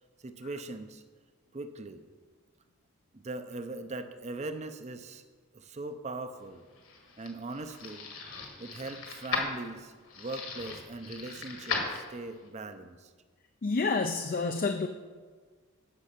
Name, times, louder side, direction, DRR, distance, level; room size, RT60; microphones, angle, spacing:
voice 1, 0.2-1.0 1.5-2.0 3.1-5.2 5.5-6.6 7.2-8.1 8.6-13.1, right 2 dB, 30° right, 9 dB, 0.6 m, -40 dB
sound 1, 6.5-12.5, left 4 dB, 65° left, 1.7 m, -38 dB
voice 2, 13.6-14.9, left 4 dB, 40° left, 6 dB, 0.4 m, -28 dB
9.8 x 6.3 x 5.8 m, 1.4 s
head